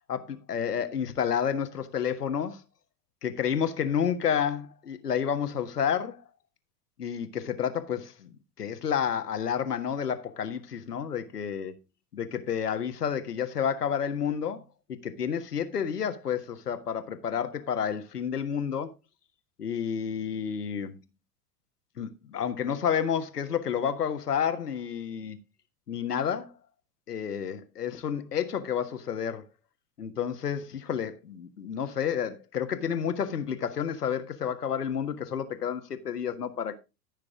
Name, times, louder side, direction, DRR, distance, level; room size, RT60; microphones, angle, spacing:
voice 1, 0.1-2.6 3.2-6.2 7.0-11.8 12.1-14.6 14.9-18.9 19.6-21.0 22.0-25.4 25.9-26.5 27.1-29.5 30.0-36.8, left 8 dB, 75° left, 1.6 m, -30 dB
14.0 x 6.6 x 3.7 m
figure-of-eight pair, 90°, 47 cm